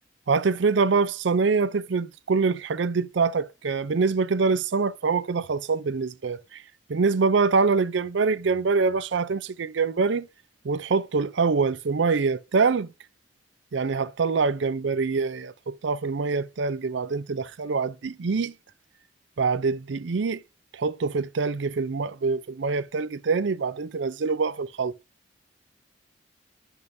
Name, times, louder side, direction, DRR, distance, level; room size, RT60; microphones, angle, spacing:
voice 1, 0.3-6.6 6.9-10.3 10.6-12.9 13.7-18.5 19.4-20.4 20.7-24.9, right 4 dB, 70° right, 0.5 m, -25 dB
9.3 x 5.4 x 2.7 m
head